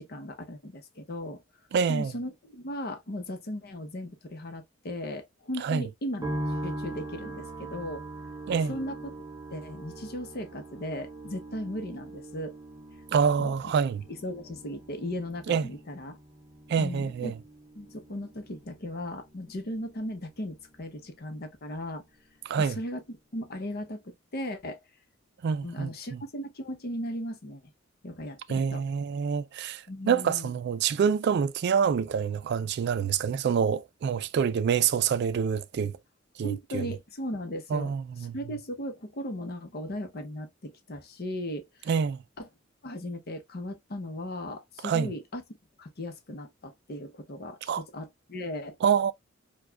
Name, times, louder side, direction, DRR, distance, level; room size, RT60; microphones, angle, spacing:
voice 1, 0.0-1.4 1.9-6.4 6.6-8.0 8.7-9.1 9.5-12.5 13.4-13.5 14.1-16.2 16.8-17.3 17.8-22.0 22.6-24.8 25.6-27.6 28.0-28.8 29.9-30.5 33.0-33.1 36.4-37.9 38.3-41.9 42.4-42.5 42.8-45.4 45.8-48.8, left 1 dB, 50° left, 0.7 m, -37 dB
voice 2, 1.7-2.1 5.6-5.8 8.5-8.7 13.1-14.0 15.5-15.7 16.7-17.4 22.5-22.8 25.4-26.2 28.5-36.0 36.4-36.9 37.7-38.4 41.9-42.2 44.8-45.1 47.7-47.8 48.8-49.1, right 6 dB, 55° right, 0.3 m, -26 dB
sound 1, 6.2-21.5 21.7-22.6, right 1 dB, 20° right, 0.7 m, -42 dB
4.6 x 2.3 x 2.2 m
head